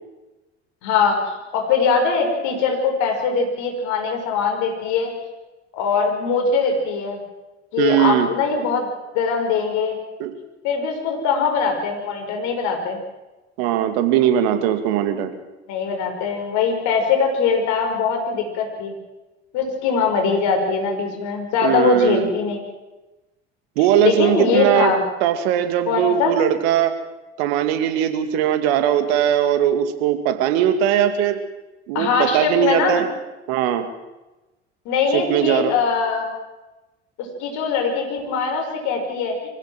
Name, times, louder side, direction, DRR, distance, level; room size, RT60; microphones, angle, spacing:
voice 1, 0.8-5.1 5.7-7.2 7.7-8.9 9.1-10.0 10.6-13.0 15.7-18.9 19.5-22.6 24.0-25.0 25.9-26.3 31.9-33.0 34.9-36.3 37.2-39.5, left 5 dB, 65° left, 3 dB, 5.7 m, -21 dB
voice 2, 7.8-8.3 10.2-10.4 13.6-15.3 21.6-22.3 23.8-24.9 25.2-26.9 27.4-31.4 31.9-33.1 33.5-33.9 35.1-35.7, right 10 dB, 70° right, 9 dB, 2.3 m, -19 dB
24.5 x 16.0 x 7.6 m, 1.1 s
hypercardioid pair, 65°, 33 cm